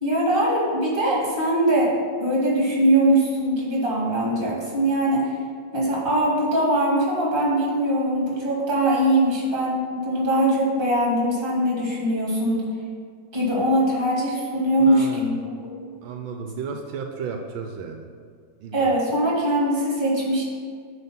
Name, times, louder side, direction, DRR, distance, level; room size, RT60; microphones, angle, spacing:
voice 1, 0.0-1.9 2.2-5.3 5.7-12.6 13.3-15.4 18.7-20.4, right 1 dB, 25° right, -5 dB, 2.2 m, -21 dB
voice 2, 14.8-15.4 16.0-18.1 18.6-19.0, right 5 dB, 80° right, 4 dB, 1.4 m, -33 dB
9.1 x 3.7 x 5.8 m, 2.1 s
omnidirectional pair, 2.1 m